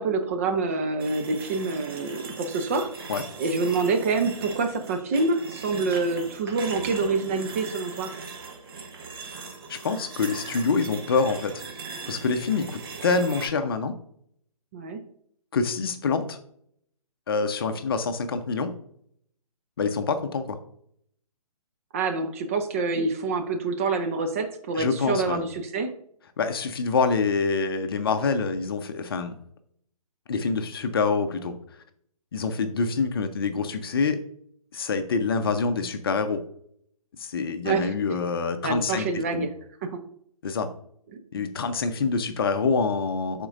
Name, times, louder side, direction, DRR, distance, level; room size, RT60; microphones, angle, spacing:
voice 1, 0.0-8.1 14.7-15.0 21.9-25.9 37.6-37.9 38.6-39.5 39.8-40.0, right 3 dB, 25° right, 6 dB, 0.5 m, -26 dB
sound 1, 1.0-13.5, right 4 dB, 40° right, 1.1 m, -39 dB
voice 2, 9.7-11.6 12.1-13.9 15.5-16.4 17.3-18.7 19.8-20.6 24.8-25.4 26.4-29.3 30.3-31.5 32.3-34.2 34.7-36.4 37.2-39.5 40.4-40.7 41.3-43.5, left 4 dB, 40° left, 9 dB, 0.7 m, -26 dB
11.5 x 4.5 x 2.5 m, 0.67 s
figure-of-eight pair, 135°, 19 cm